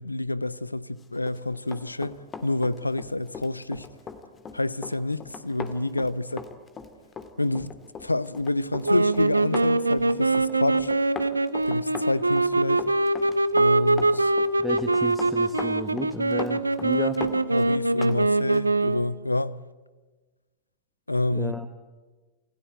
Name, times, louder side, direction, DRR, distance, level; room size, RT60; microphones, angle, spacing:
voice 1, 0.0-3.9 4.5-6.5 7.4-7.7 8.0-10.9 11.7-12.9 13.5-14.3 17.5-19.6 21.1-21.5, left 2 dB, 85° left, 0.7 m, -28 dB
Run, 1.2-18.2 18.5-18.7, left 5 dB, 20° left, 2.2 m, -39 dB
sound 1, 8.8-19.2, right 2 dB, 80° right, 0.8 m, -23 dB
voice 2, 14.6-17.2 21.3-21.7, left 1 dB, 5° left, 1.5 m, -33 dB
28.0 x 17.0 x 9.2 m
figure-of-eight pair, 90°, 0 cm